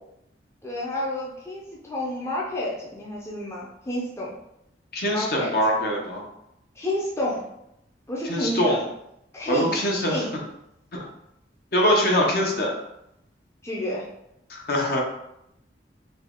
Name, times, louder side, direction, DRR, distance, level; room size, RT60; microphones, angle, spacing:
voice 1, 0.6-4.3 5.1-5.5 6.8-7.4 8.1-8.9 9.3-10.4 13.6-14.1, left 1 dB, 15° left, -4 dB, 0.6 m, -30 dB
voice 2, 4.9-6.2 8.2-8.8 9.5-10.2 10.9-11.1 11.7-12.7 14.5-15.0, equal, 60° left, 0 dB, 0.8 m, -23 dB
4.0 x 2.3 x 3.6 m, 0.81 s
head